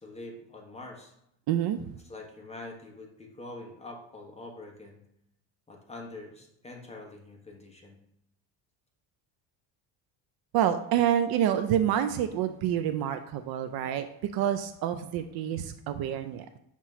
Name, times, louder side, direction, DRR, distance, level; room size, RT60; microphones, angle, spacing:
voice 1, 0.0-1.1 2.0-5.0 5.7-8.0, left 2 dB, 15° left, 0 dB, 1.2 m, -45 dB
voice 2, 1.5-1.9 10.5-16.5, right 10 dB, 60° right, 9 dB, 0.5 m, -28 dB
5.9 x 3.0 x 5.6 m, 0.78 s
cardioid pair, 135°, 43 cm